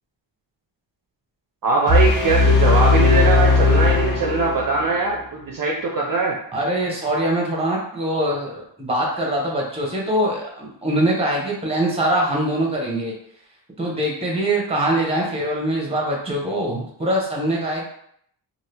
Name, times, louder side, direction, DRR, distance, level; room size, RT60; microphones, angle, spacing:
voice 1, 1.6-6.4, right 3 dB, 50° right, -1 dB, 0.5 m, -21 dB
sound 1, 1.9-4.9, left 3 dB, 80° left, 1.2 m, -17 dB
voice 2, 6.5-13.1 13.8-17.8, right 1 dB, 15° right, -2 dB, 0.8 m, -23 dB
2.8 x 2.6 x 3.3 m, 0.68 s
wide cardioid pair, 130°, 46 cm